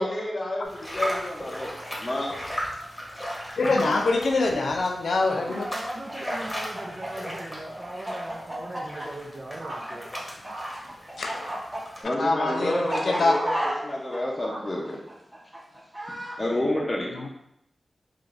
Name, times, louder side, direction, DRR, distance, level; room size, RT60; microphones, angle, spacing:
voice 1, 0.0-2.3 12.0-13.6 13.8-15.0 16.4-17.3, left 1 dB, 35° left, -3 dB, 0.6 m, -29 dB
sound 1, 0.6-12.0, equal, 15° left, 1.0 m, -37 dB
voice 2, 3.6-5.6 11.2-11.5 12.2-13.3 16.6-16.8 17.2-17.3, left 3 dB, 85° left, 3 dB, 0.4 m, -24 dB
voice 3, 5.4-10.2, right 1 dB, 40° right, -1 dB, 0.4 m, -38 dB
Chicken rooster, 6.1-10.5 10.7-16.4, right 1 dB, 10° right, 0.9 m, -33 dB
sound 2, 9.6-9.8 10.5-10.7 11.4-11.6 12.4-12.6 13.3-13.5 14.4-14.6, right 2 dB, 85° right, 0.8 m, -37 dB
4.8 x 2.5 x 2.5 m, 0.80 s
wide cardioid pair, 85°, 0 cm